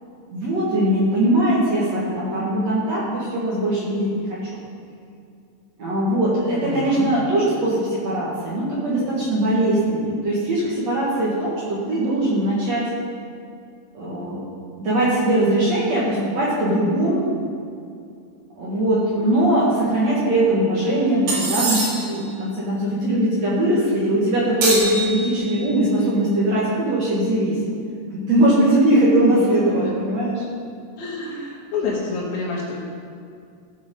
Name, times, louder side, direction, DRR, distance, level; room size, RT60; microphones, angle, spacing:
voice 1, 0.3-4.5 5.8-12.8 13.9-14.4 14.8-17.3 18.6-27.6 28.1-30.4, right 1 dB, 55° right, -7 dB, 2.5 m, -20 dB
voice 2, 6.5-7.1 29.2-29.9 31.0-32.7, left 4 dB, 75° left, -7 dB, 3.2 m, -29 dB
sound 1, 21.3-22.2 24.6-25.7, right 2 dB, 85° right, 4.0 m, -24 dB
15.0 x 5.3 x 5.1 m, 2.4 s
omnidirectional pair, 4.2 m